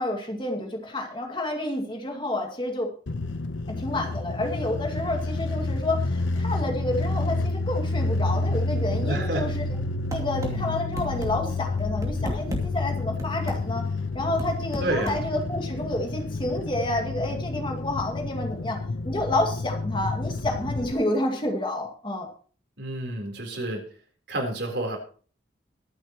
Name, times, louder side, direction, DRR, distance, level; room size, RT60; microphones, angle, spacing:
voice 1, 0.0-2.9 3.7-9.6 10.1-13.9 14.1-18.8 19.0-22.3, left 1 dB, 25° left, 2 dB, 2.1 m, -29 dB
sound 1, 3.1-20.9, left 2 dB, 80° left, 0.9 m, -29 dB
voice 2, 9.0-9.5 10.4-10.6 14.8-15.2 22.8-23.8 24.3-25.0, right 1 dB, 60° right, 2 dB, 3.9 m, -29 dB
sound 2, 10.1-10.5 11.0-11.3 11.8-12.6 13.2-13.6 14.4-15.2, equal, 15° right, 2.5 m, -32 dB
23.0 x 8.3 x 3.0 m, 0.42 s
head